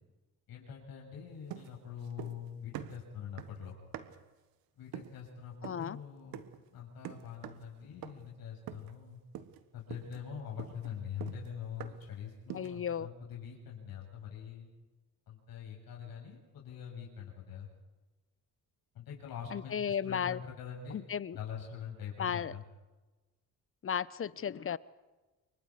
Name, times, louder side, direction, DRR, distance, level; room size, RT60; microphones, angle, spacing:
voice 1, 0.5-3.7 4.8-6.4 6.7-9.2 9.7-14.7 15.3-17.7 18.9-21.1 21.3-22.6, left 8 dB, 75° left, 7.5 m, -44 dB
Footsteps Wood Indoor Harder, 1.5-2.5 2.7-4.3 4.9-5.2 5.6-5.9 6.3-6.6 7.0-7.7 8.0-8.3 8.7-9.0 9.3-9.6 9.9-12.1 12.5-12.8, right 11 dB, 80° right, 1.6 m, -46 dB
voice 2, 5.6-6.0 12.5-13.1 19.5-20.4 20.9-21.4 22.2-22.5 23.8-24.8, left 8 dB, 35° left, 0.8 m, -34 dB
28.5 x 24.0 x 5.0 m
cardioid pair, 90°, 36 cm